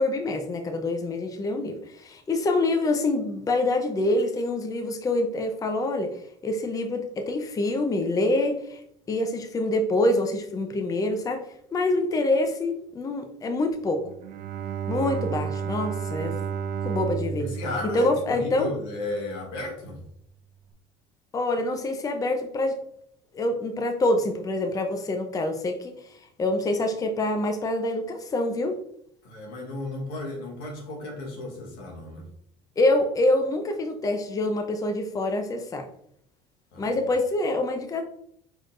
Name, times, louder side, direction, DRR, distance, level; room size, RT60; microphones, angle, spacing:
voice 1, 0.0-6.1 6.4-8.8 9.1-11.4 11.7-14.0 14.9-16.3 16.8-17.5 17.9-18.7 21.3-22.8 23.3-25.9 26.4-28.8 32.8-35.9 36.8-38.0, left 2 dB, 25° left, 5 dB, 0.6 m, -26 dB
Bowed string instrument, 14.0-19.2, right 7 dB, 65° right, 0.6 m, -32 dB
voice 2, 17.4-20.0 29.2-32.3 36.7-37.0, left 2 dB, 80° left, 1 dB, 1.5 m, -34 dB
4.9 x 4.0 x 2.6 m, 0.69 s
supercardioid pair, 105°, 14 cm